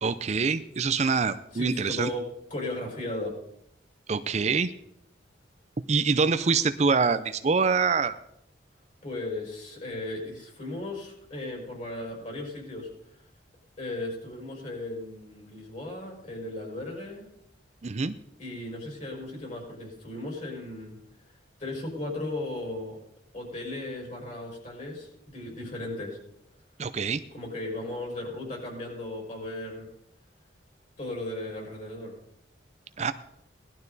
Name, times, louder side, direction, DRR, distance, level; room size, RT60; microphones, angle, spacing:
voice 1, 0.0-2.1 4.1-4.7 5.9-8.2 17.8-18.1 26.8-27.2 33.0-33.1, right 5 dB, 35° right, 12 dB, 0.5 m, -25 dB
voice 2, 1.5-3.4 9.0-12.9 13.8-17.3 18.4-21.0 21.6-23.0 23.3-26.2 27.3-29.9 31.0-32.2, left 2 dB, 40° left, 0 dB, 5.4 m, -36 dB
18.0 x 12.0 x 4.0 m, 0.77 s
head